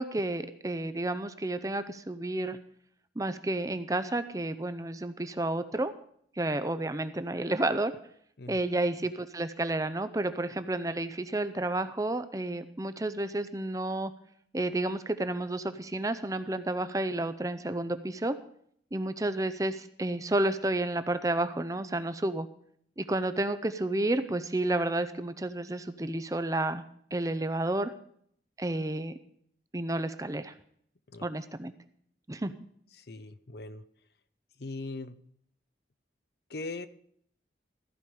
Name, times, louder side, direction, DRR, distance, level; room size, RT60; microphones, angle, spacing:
voice 1, 0.0-2.6 3.2-5.9 6.4-7.9 8.5-14.1 14.5-18.4 18.9-22.5 23.0-26.8 27.1-27.9 28.6-29.1 29.7-30.5 31.2-31.7 32.3-32.5, right 2 dB, 20° right, 11 dB, 0.6 m, -31 dB
voice 2, 33.0-33.8 34.6-35.2 36.5-36.9, left 3 dB, 60° left, 13 dB, 0.7 m, -40 dB
14.5 x 5.2 x 9.3 m, 0.65 s
head